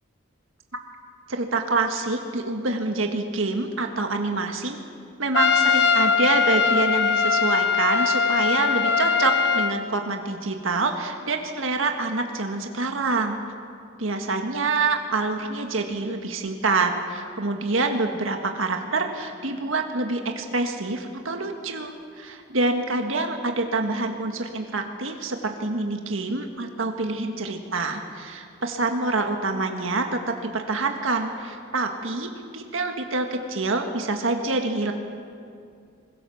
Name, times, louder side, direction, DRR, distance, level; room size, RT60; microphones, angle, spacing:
voice 1, 1.3-4.8 5.2-13.4 14.0-34.9, right 3 dB, 75° right, 4 dB, 1.7 m, -26 dB
Trumpet, 5.3-9.8, left 5 dB, 55° left, 0.8 m, -21 dB
24.5 x 21.0 x 7.1 m, 2.4 s
head